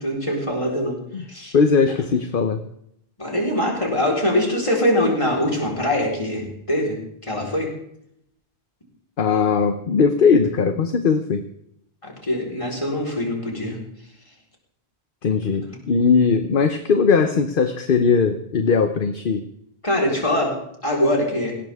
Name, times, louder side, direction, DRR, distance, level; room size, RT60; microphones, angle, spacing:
voice 1, 0.0-1.5 3.2-7.7 12.0-13.8 15.6-15.7 19.8-21.5, left 1 dB, 30° left, -2 dB, 4.3 m, -23 dB
voice 2, 1.5-2.6 9.2-11.4 15.2-19.5, left 5 dB, 60° left, 8 dB, 1.0 m, -19 dB
19.0 x 17.5 x 3.6 m, 0.73 s
omnidirectional pair, 1.1 m